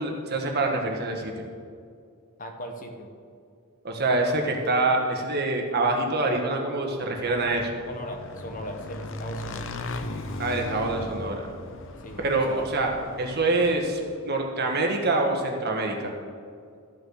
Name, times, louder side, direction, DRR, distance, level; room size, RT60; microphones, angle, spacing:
voice 1, 0.0-1.3 3.8-7.7 10.4-11.5 12.2-12.9 13.2-14.0 14.2-16.1, right 2 dB, 45° right, 1 dB, 1.5 m, -25 dB
voice 2, 2.4-3.1 7.9-9.7 12.0-12.7, equal, 35° left, 4 dB, 1.2 m, -38 dB
Motorcycle / Engine, 6.9-14.3, left 2 dB, 60° left, 0.8 m, -38 dB
13.5 x 6.3 x 6.4 m, 2.3 s
head